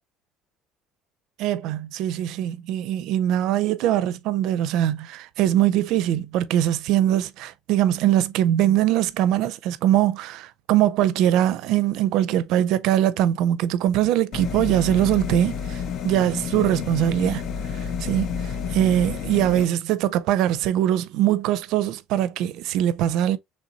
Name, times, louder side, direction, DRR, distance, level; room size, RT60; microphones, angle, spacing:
voice 1, 1.4-17.4 18.0-23.4, right 11 dB, 65° right, 0.4 m, -22 dB
sound 1, 14.3-19.7, left 7 dB, 45° left, 0.5 m, -30 dB
3.9 x 3.3 x 2.8 m
cardioid pair, 160°, 0 cm